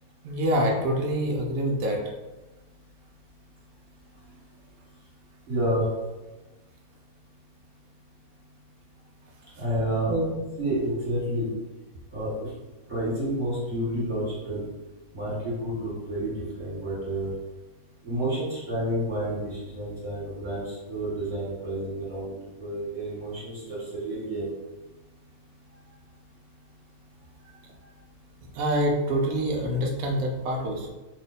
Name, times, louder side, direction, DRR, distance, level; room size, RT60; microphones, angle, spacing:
voice 1, 0.2-2.0 10.1-10.4 28.5-30.9, equal, 70° right, 1 dB, 1.0 m, -26 dB
voice 2, 5.5-5.9 9.6-10.1 10.6-11.5 12.1-12.5 12.9-14.7 15.1-17.3 18.0-24.5, right 1 dB, 30° right, -10 dB, 1.6 m, -30 dB
3.0 x 2.2 x 3.9 m, 1.1 s
omnidirectional pair, 1.6 m